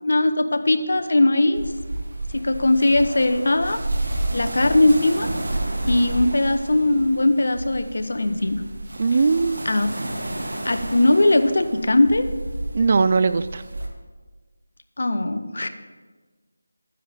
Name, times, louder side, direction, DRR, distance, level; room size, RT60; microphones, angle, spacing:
voice 1, 0.0-1.7 2.3-3.8 4.3-5.3 5.9-8.6 9.6-9.9 10.6-12.3 15.0-15.7, left 2 dB, 60° left, 9 dB, 0.9 m, -19 dB
sound 1, 1.5-13.9, right 1 dB, 60° right, 1.9 m, -31 dB
voice 2, 9.0-9.6 12.7-13.6, right 4 dB, 35° right, 14 dB, 0.3 m, -19 dB
13.0 x 9.7 x 3.5 m, 1.4 s
figure-of-eight pair, 170°, 0 cm